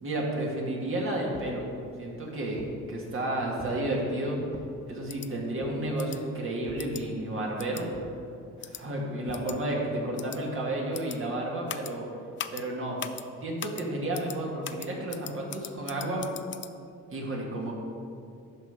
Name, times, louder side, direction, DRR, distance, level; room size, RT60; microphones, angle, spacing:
voice 1, 0.0-1.7 2.0-4.4 4.9-7.9 8.6-12.1 12.5-13.1 13.4-16.3 17.1-17.7, right 1 dB, 45° right, -2 dB, 2.0 m, -31 dB
sound 1, 1.3-1.6 2.2-2.8 3.6-3.9 4.5-4.8 5.6-5.9 6.7-6.9 7.9-8.2 9.3-9.5, equal, 10° left, 1.4 m, -46 dB
sound 2, 5.1-5.3 6.0-6.2 6.8-7.0 7.6-7.8 8.6-8.8 9.3-9.6 10.2-10.4 10.9-11.2 11.7-11.9 12.4-12.6 13.0-13.2 13.6-13.8 14.1-14.4 14.6-16.7, left 9 dB, 40° left, 0.4 m, -39 dB
12.0 x 4.2 x 5.1 m, 2.4 s
cardioid pair, 90°, 30 cm